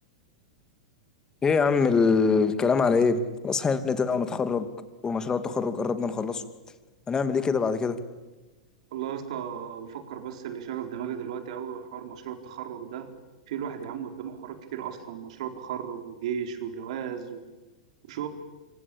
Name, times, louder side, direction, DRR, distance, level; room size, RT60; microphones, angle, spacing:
voice 1, 1.4-4.7 5.0-6.4 7.1-8.0, left 5 dB, 20° left, 10 dB, 2.5 m, -24 dB
voice 2, 8.9-13.1 13.5-17.4 18.1-18.3, right 8 dB, 65° right, 6 dB, 4.5 m, -35 dB
26.0 x 25.0 x 8.8 m, 1.2 s
hypercardioid pair, 110°, 4 cm